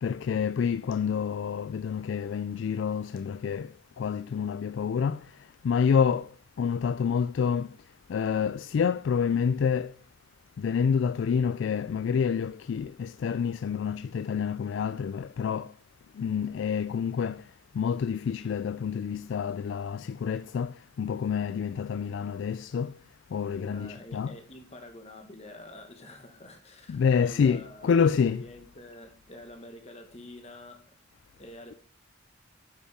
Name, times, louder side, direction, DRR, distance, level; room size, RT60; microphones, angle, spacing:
voice 1, 0.0-5.2 5.6-6.3 6.6-7.7 8.1-9.9 10.6-15.7 16.2-17.4 17.7-23.0 23.3-24.3 26.9-28.4, left 6 dB, 65° left, 0.3 m, -28 dB
voice 2, 23.5-30.9 31.4-31.7, left 1 dB, 35° left, 1.7 m, -47 dB
9.4 x 5.3 x 5.1 m
head